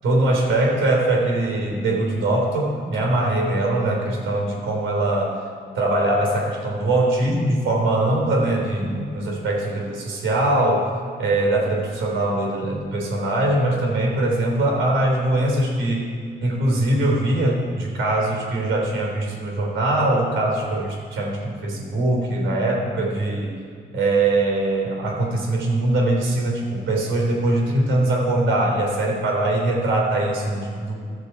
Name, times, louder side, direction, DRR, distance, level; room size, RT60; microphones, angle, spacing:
voice 1, 0.0-5.4 5.7-10.9 11.2-16.1 16.4-23.6 23.9-31.0, right 2 dB, 80° right, -1 dB, 3.5 m, -22 dB
17.0 x 6.9 x 4.8 m, 2.1 s
cardioid pair, 90°, 20 cm